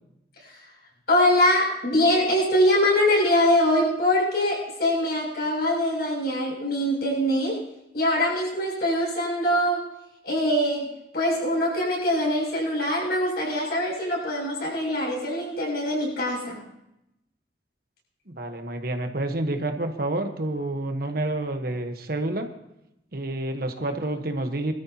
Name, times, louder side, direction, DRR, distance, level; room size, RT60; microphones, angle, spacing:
voice 1, 1.1-7.6 7.9-9.8 10.2-16.6, left 1 dB, 60° left, -4 dB, 7.1 m, -23 dB
voice 2, 18.3-22.5 23.1-24.7, right 2 dB, 55° right, 6 dB, 1.2 m, -29 dB
23.0 x 13.5 x 2.9 m, 0.86 s
head